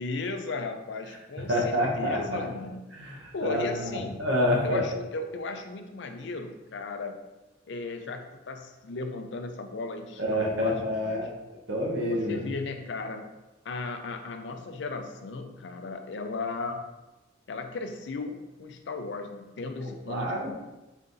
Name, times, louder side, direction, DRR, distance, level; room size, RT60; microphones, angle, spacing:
voice 1, 0.0-2.9 3.3-4.2 4.6-7.2 7.7-11.2 12.1-13.3 13.6-16.9 17.5-20.5, left 3 dB, 65° left, 6 dB, 0.5 m, -36 dB
voice 2, 1.5-2.4 2.9-3.9 4.2-4.8 10.2-11.3 11.7-12.4 19.8-20.5, left 1 dB, 75° right, -2 dB, 0.9 m, -28 dB
4.4 x 2.6 x 3.7 m, 1.0 s
head